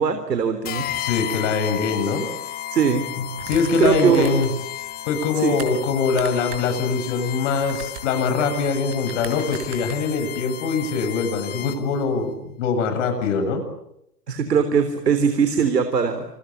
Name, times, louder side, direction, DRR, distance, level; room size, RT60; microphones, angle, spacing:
voice 1, 0.0-0.9 2.7-3.0 3.8-4.4 5.4-5.6 14.3-16.2, right 6 dB, 75° right, 8 dB, 3.7 m, -20 dB
sound 1, 0.6-12.0, left 12 dB, 20° left, 1.5 m, -33 dB
voice 2, 1.0-2.3 3.2-4.5 5.1-13.6, left 5 dB, 45° left, 7 dB, 7.7 m, -23 dB
sound 2, 3.4-4.6 5.0-5.7 6.1-6.8 7.0-10.4, right 12 dB, 35° right, 5.8 m, -39 dB
28.5 x 24.5 x 8.6 m, 0.80 s
hypercardioid pair, 130°, 49 cm